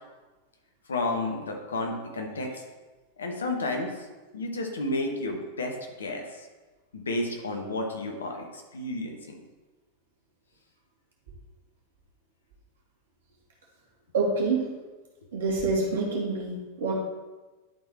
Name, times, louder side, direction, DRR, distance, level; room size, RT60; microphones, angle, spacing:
voice 1, 0.9-2.6 3.2-4.1 4.3-6.5 6.9-9.4, left 2 dB, 70° left, 2 dB, 1.2 m, -32 dB
voice 2, 14.1-14.7 15.3-16.9, right 3 dB, 60° right, -2 dB, 2.1 m, -26 dB
11.0 x 4.0 x 4.2 m, 1.2 s
figure-of-eight pair, 90°, 0 cm